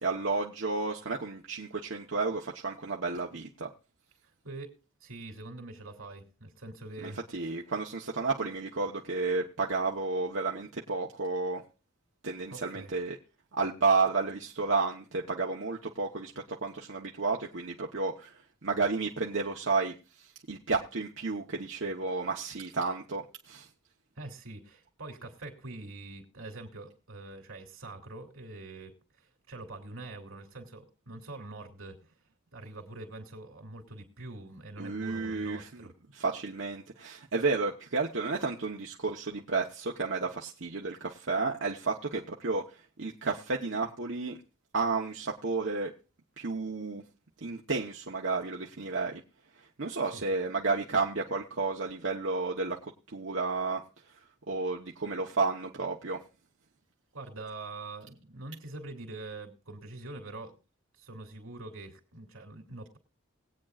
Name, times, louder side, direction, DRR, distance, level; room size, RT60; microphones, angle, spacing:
voice 1, 0.0-3.7 7.0-11.6 12.2-13.2 13.5-23.7 34.8-35.9 36.1-44.4 44.7-45.9 46.4-47.0 47.4-49.2 49.6-53.8 54.5-56.2, right 4 dB, 65° right, 0 dB, 1.1 m, -32 dB
voice 2, 4.4-7.5 12.5-12.9 24.2-32.0 32.5-35.9 50.1-50.2 57.1-60.6 60.9-63.0, right 2 dB, 90° right, 3 dB, 2.9 m, -44 dB
21.0 x 8.8 x 2.5 m, 0.33 s
head